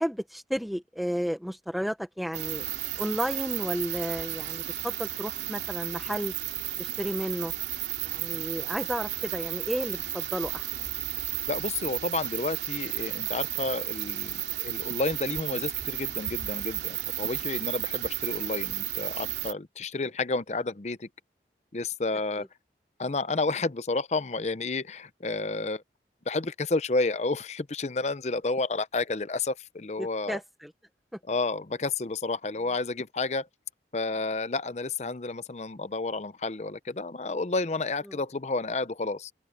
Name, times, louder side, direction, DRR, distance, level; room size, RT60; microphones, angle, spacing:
voice 1, 0.0-2.7 3.0-6.3 6.8-7.5 8.0-10.7 22.3-22.5 30.0-30.7 38.1-38.2, equal, ahead, 0.9 m, -32 dB
sound 1, 2.3-19.5, right 13 dB, 75° right, 2.7 m, -33 dB
voice 2, 11.5-21.1 21.7-22.5 23.0-25.8 26.3-30.4 31.3-33.5 33.9-39.3, left 3 dB, 40° left, 0.6 m, -31 dB
open air
head